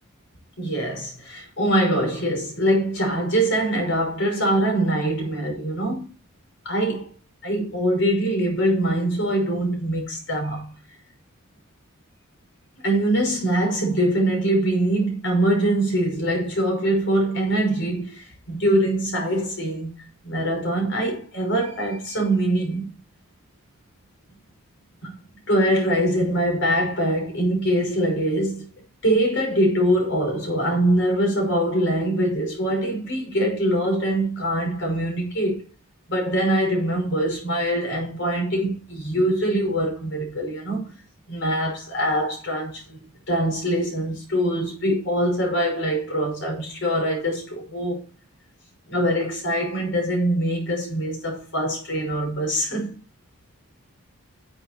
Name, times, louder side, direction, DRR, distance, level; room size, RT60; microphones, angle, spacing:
voice 1, 0.6-6.1 6.6-7.1 7.4-10.7 12.8-20.0 20.2-22.9 25.0-25.2 25.5-28.7 29.0-35.6 36.1-40.9 41.3-43.0 43.3-48.0 48.9-53.0, right 1 dB, 55° left, 5.7 m, -23 dB
11.0 x 8.0 x 4.4 m
head